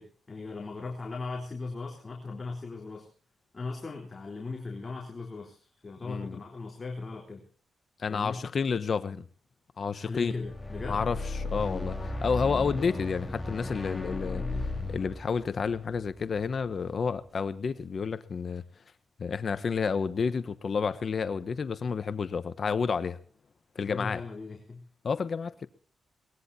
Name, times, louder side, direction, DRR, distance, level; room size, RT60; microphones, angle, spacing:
voice 1, 0.0-3.1 3.5-7.4 8.1-8.4 9.9-11.0 23.9-24.9, left 3 dB, 30° left, 3.7 m, -38 dB
voice 2, 6.0-6.4 8.0-9.2 9.8-10.3 10.9-18.6 19.2-23.2 23.7-24.2 25.0-25.7, left 5 dB, 50° left, 1.0 m, -30 dB
sound 1, 10.4-16.7, left 2 dB, 10° left, 4.0 m, -35 dB
22.5 x 20.0 x 2.8 m
cardioid pair, 95°, 0 cm